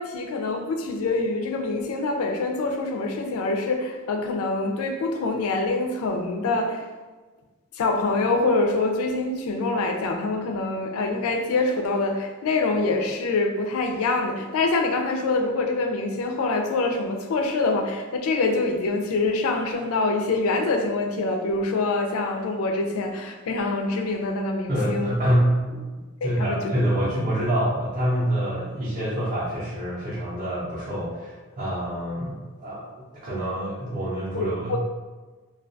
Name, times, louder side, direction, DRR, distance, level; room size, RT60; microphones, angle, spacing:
voice 1, 0.0-6.9 7.7-25.2 26.2-26.7 34.3-34.4 34.7-34.8, left 3 dB, 75° left, 4 dB, 0.4 m, -25 dB
voice 2, 24.7-25.8 26.2-32.9 33.1-34.8, equal, 35° right, -9 dB, 0.5 m, -26 dB
2.2 x 2.2 x 2.6 m, 1.3 s
head